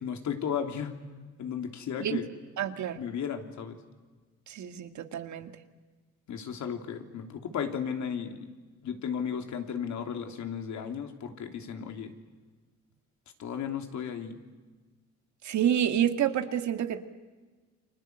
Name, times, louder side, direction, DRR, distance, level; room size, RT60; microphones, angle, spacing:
voice 1, 0.0-0.9 1.4-2.2 3.0-3.8 6.3-8.4 8.8-12.1 13.4-14.3, left 7 dB, 70° left, 5 dB, 3.2 m, -34 dB
voice 2, 2.6-3.0 4.5-5.5 15.4-17.0, right 10 dB, 70° right, 8 dB, 2.0 m, -28 dB
29.5 x 24.5 x 8.0 m, 1.3 s
cardioid pair, 90°, 30 cm